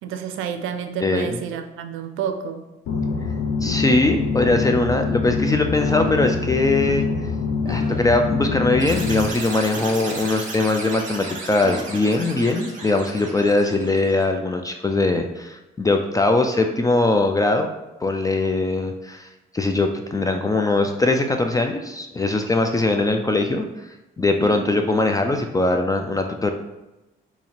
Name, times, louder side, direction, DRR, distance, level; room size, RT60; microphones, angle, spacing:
voice 1, 0.0-2.7 24.4-24.7, right 7 dB, 90° right, 7 dB, 0.4 m, -30 dB
sound 1, 2.9-9.3, left 4 dB, 85° left, 0.6 m, -24 dB
voice 2, 3.6-7.1 7.7-17.7 18.0-19.3 19.5-26.5, left 2 dB, 20° left, 5 dB, 0.3 m, -21 dB
sound 2, 5.8-6.4 7.7-8.3 9.7-10.6 11.6-12.4 13.5-13.7, right 2 dB, 25° right, 0.6 m, -38 dB
sound 3, 8.8-14.2, right 3 dB, 40° right, 1.0 m, -35 dB
2.8 x 2.8 x 4.2 m, 1.0 s
cardioid pair, 90°, 20 cm